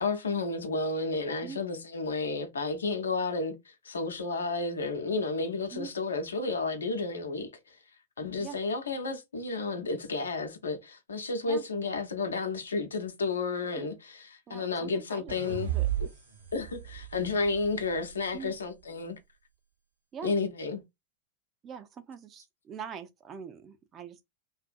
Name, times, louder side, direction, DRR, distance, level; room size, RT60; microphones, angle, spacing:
voice 1, 0.0-7.8 8.2-15.7 16.0-16.1 16.5-19.2 20.2-20.8, left 3 dB, 70° left, 0.7 m, -32 dB
voice 2, 14.5-15.9 18.3-18.5 20.1-20.3 21.6-24.2, right 7 dB, 25° right, 0.4 m, -43 dB
sound 1, 15.3-18.5, right 12 dB, 70° right, 0.8 m, -35 dB
2.5 x 2.5 x 2.4 m
figure-of-eight pair, 90°, 0 cm